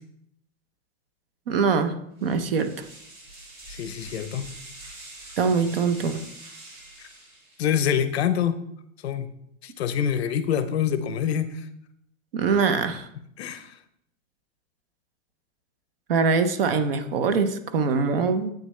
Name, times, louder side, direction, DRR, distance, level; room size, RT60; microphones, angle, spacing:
voice 1, 1.5-1.9 2.2-2.7 5.4-6.2 12.3-13.1 16.1-18.5, right 5 dB, 45° right, 10 dB, 0.6 m, -23 dB
sound 1, 2.2-7.8, right 2 dB, 20° right, 2.0 m, -45 dB
voice 2, 3.7-4.5 7.0-7.1 7.6-8.6 9.0-9.3 9.6-11.7 13.4-13.7, left 9 dB, 50° left, 11 dB, 0.6 m, -26 dB
8.5 x 6.5 x 3.2 m, 0.74 s
supercardioid pair, 175°, 42 cm